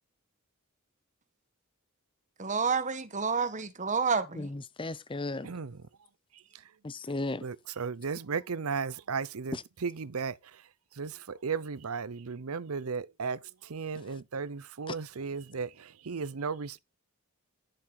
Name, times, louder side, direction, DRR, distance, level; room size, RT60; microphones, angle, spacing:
voice 1, 2.4-4.5, right 5 dB, 35° right, 1.5 m, -29 dB
voice 2, 4.4-5.6 6.8-7.5 9.5-9.6 13.9-14.2 14.9-15.0, left 2 dB, 25° left, 0.6 m, -36 dB
voice 3, 5.4-5.8 6.3-6.6 7.4-9.6 9.8-10.6 10.9-16.8, right 5 dB, 80° right, 0.7 m, -35 dB
11.0 x 7.3 x 4.7 m
head